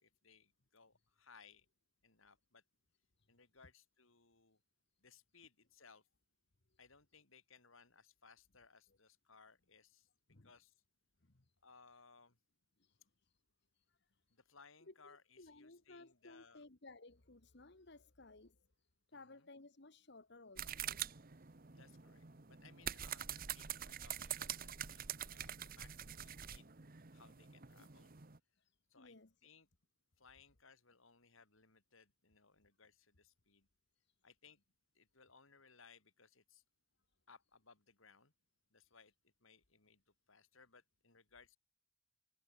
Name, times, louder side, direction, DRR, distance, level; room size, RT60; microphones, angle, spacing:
voice 1, 0.0-1.7 2.0-2.6 3.3-4.6 5.0-6.1 6.8-10.1 10.4-10.8 11.6-12.4 14.3-16.7 19.1-19.5 21.6-26.7 27.1-28.1 28.9-29.2 29.4-29.7 30.2-33.7 34.2-34.6 34.9-36.6 37.3-38.3 38.7-41.6, left 5 dB, 70° left, 3.2 m, -65 dB
voice 2, 11.2-11.5 12.8-13.4 13.7-14.2 14.9-18.7 19.1-21.1 28.5-29.3, left 2 dB, 50° left, 1.4 m, -60 dB
sound 1, 20.6-28.4, right 10 dB, 40° right, 1.1 m, -46 dB
head